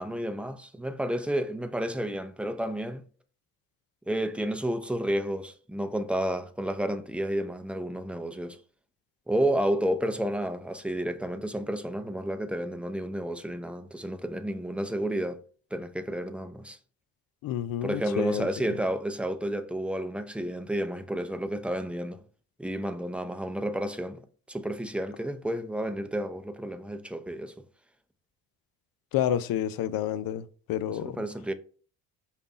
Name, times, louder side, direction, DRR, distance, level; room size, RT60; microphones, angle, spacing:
voice 1, 0.0-3.0 4.1-8.6 9.3-15.4 15.7-16.8 17.8-22.2 22.6-24.2 24.5-27.5 31.0-31.5, right 1 dB, 5° right, 0.6 m, -31 dB
voice 2, 17.4-18.5 29.1-31.2, left 11 dB, 60° left, 0.6 m, -29 dB
5.2 x 2.4 x 4.0 m
supercardioid pair, 70°, 40 cm